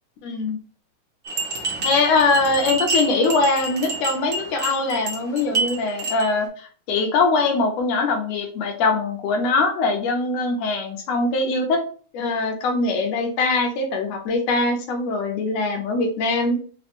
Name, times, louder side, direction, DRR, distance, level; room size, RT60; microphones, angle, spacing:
voice 1, 0.2-0.6 1.8-11.8 12.1-16.6, left 3 dB, 75° left, 3 dB, 1.7 m, -22 dB
sound 1, 1.2-6.4, right 2 dB, 75° right, 1.0 m, -28 dB
4.9 x 2.2 x 2.9 m, 0.43 s
omnidirectional pair, 3.5 m